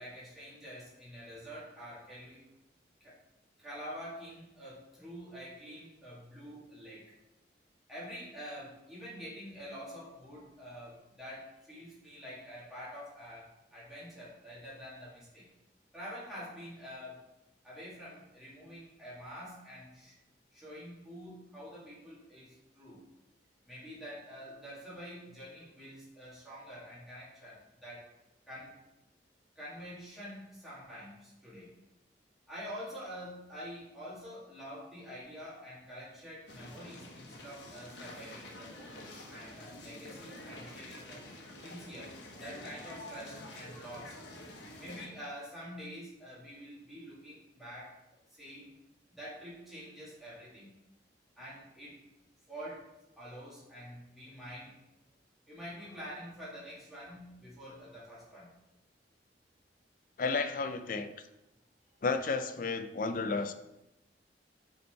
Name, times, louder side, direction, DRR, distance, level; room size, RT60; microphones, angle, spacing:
voice 1, 0.0-2.4 3.0-3.1 3.6-7.0 7.9-15.5 15.9-17.2 17.6-20.1 20.5-23.0 23.7-28.1 28.5-28.8 29.6-31.7 32.5-41.2 41.6-44.2 44.8-48.0 48.3-48.7 49.1-50.7 51.4-52.0 52.5-52.9 53.2-54.7 55.5-58.5, equal, ahead, -10 dB, 2.3 m, -47 dB
footsteps medium crowd ext gravel park good detail, 36.5-45.1, left 1 dB, 85° left, 1.2 m, -48 dB
voice 2, 60.2-61.1 62.0-63.5, left 4 dB, 50° left, 10 dB, 0.4 m, -32 dB
5.5 x 4.4 x 4.5 m, 0.97 s
head